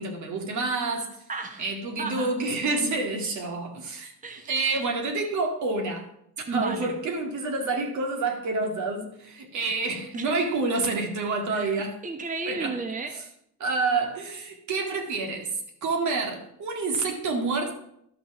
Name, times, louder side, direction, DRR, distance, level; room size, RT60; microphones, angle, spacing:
voice 1, 0.0-1.1 1.6-4.1 4.5-6.1 6.5-12.0 12.5-12.7 13.6-15.5 15.8-17.7, right 3 dB, 70° right, 3 dB, 2.1 m, -28 dB
voice 2, 1.3-1.7 2.0-2.3 4.2-4.6 6.5-7.0 9.6-9.7 10.2-10.3 11.5-11.6 12.0-13.1, right 3 dB, 25° right, 5 dB, 1.1 m, -33 dB
11.0 x 5.9 x 5.9 m, 0.74 s
cardioid pair, 90°, 30 cm